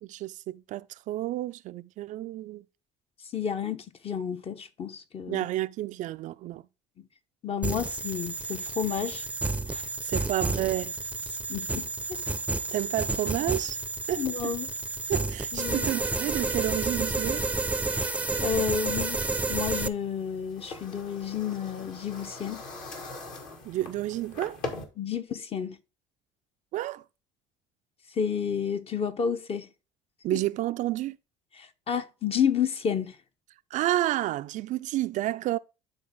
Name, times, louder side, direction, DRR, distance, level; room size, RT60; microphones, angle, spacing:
voice 1, 0.0-2.6 5.3-6.6 10.0-10.9 12.7-13.8 14.1-14.3 15.1-17.5 23.6-24.6 26.7-27.0 30.2-31.2 33.7-35.6, right 15 dB, 50° right, 0.4 m, -30 dB
voice 2, 3.3-5.5 7.4-9.2 9.7-9.9 11.5-12.2 14.2-14.7 15.5-15.9 17.9-18.1 18.4-22.7 25.0-25.8 28.1-29.7 31.6-33.2, left 7 dB, 35° left, 1.0 m, -31 dB
sound 1, 7.6-19.9, right 3 dB, 10° right, 0.6 m, -30 dB
sound 2, 19.5-24.8, left 3 dB, 55° left, 2.2 m, -41 dB
11.5 x 4.0 x 3.6 m
hypercardioid pair, 65°, 16 cm